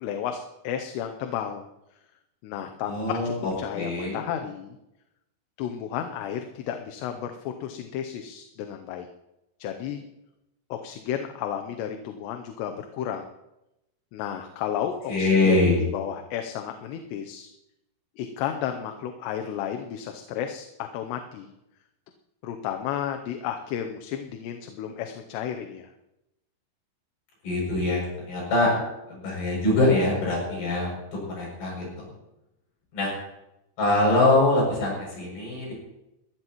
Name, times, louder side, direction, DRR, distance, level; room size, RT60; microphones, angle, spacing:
voice 1, 0.0-1.6 2.4-4.8 5.6-9.1 9.6-10.1 10.7-13.3 14.1-17.5 18.2-21.5 22.4-25.9, left 9 dB, 85° left, 5 dB, 2.9 m, -33 dB
voice 2, 2.8-4.2 15.1-15.8 27.4-28.7 29.1-32.1 32.9-33.1 33.8-35.7, left 2 dB, 60° left, -4 dB, 8.9 m, -24 dB
21.5 x 13.5 x 3.0 m, 0.90 s
omnidirectional pair, 4.9 m